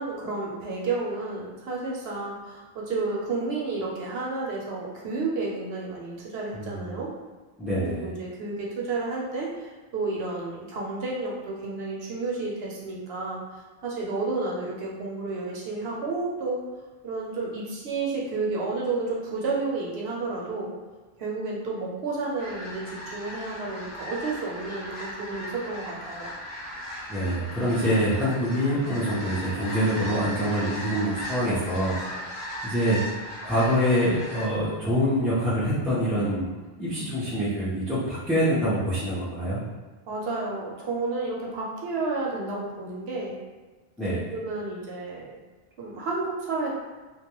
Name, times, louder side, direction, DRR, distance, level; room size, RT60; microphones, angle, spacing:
voice 1, 0.0-7.1 7.8-13.4 13.8-16.6 17.0-20.7 21.2-26.3 40.1-43.3 44.3-45.3 45.8-46.7, right 3 dB, 80° right, -3 dB, 0.9 m, -31 dB
voice 2, 6.5-7.0 7.6-8.1 27.1-32.4 32.6-33.0 33.4-36.5 36.8-39.6 44.0-44.2, equal, ahead, -11 dB, 0.5 m, -25 dB
sound 1, 22.4-34.4, equal, 30° left, 0.9 m, -37 dB
2.3 x 2.1 x 2.9 m, 1.3 s
omnidirectional pair, 1.0 m